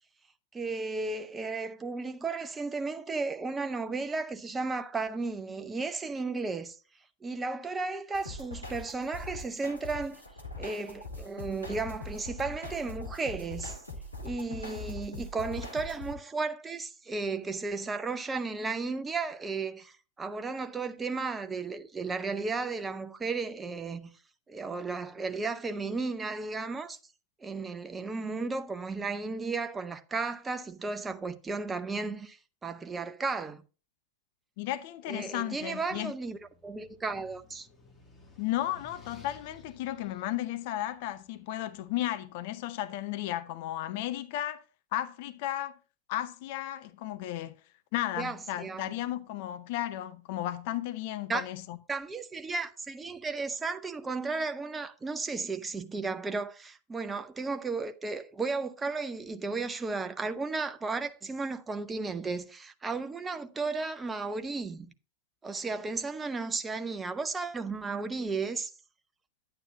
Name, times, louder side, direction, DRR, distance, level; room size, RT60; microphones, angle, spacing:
voice 1, 0.5-6.8 7.2-10.2 10.6-13.8 14.2-24.1 24.5-27.0 27.4-33.6 35.1-37.7 48.2-48.9 51.3-51.5 51.9-64.9 65.4-68.7, right 4 dB, 15° right, 0.8 m, -34 dB
sound 1, 8.1-16.1, left 2 dB, 85° left, 1.7 m, -42 dB
voice 2, 34.6-36.1 38.4-44.6 44.9-45.7 46.1-47.6 47.9-51.8, left 13 dB, 50° left, 0.7 m, -34 dB
sound 2, 35.7-41.9, left 4 dB, 10° left, 2.2 m, -56 dB
11.0 x 9.0 x 2.6 m
figure-of-eight pair, 90°, 0 cm